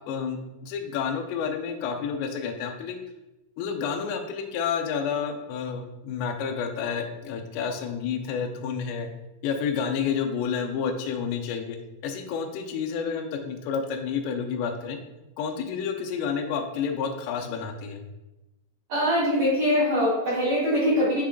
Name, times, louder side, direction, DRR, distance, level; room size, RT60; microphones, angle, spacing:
voice 1, 0.1-3.0 3.6-9.1 9.4-11.8 12.0-15.0 15.4-18.0, left 6 dB, 85° left, 4 dB, 2.7 m, -30 dB
voice 2, 18.9-21.2, equal, 60° right, -11 dB, 2.0 m, -23 dB
6.5 x 3.5 x 2.2 m, 0.97 s
omnidirectional pair, 4.9 m